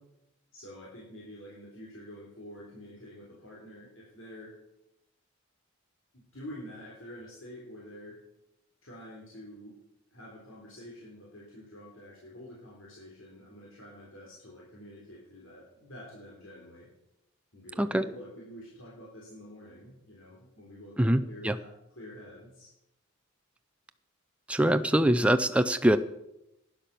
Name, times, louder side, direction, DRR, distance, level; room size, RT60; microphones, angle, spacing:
voice 1, 0.5-4.6 6.1-8.2 8.8-9.8 10.1-16.9 17.5-22.7, equal, 70° left, -5 dB, 3.4 m, -48 dB
voice 2, 21.0-21.6 24.5-26.0, right 1 dB, 5° right, 9 dB, 0.4 m, -24 dB
12.0 x 10.5 x 5.9 m, 0.87 s
head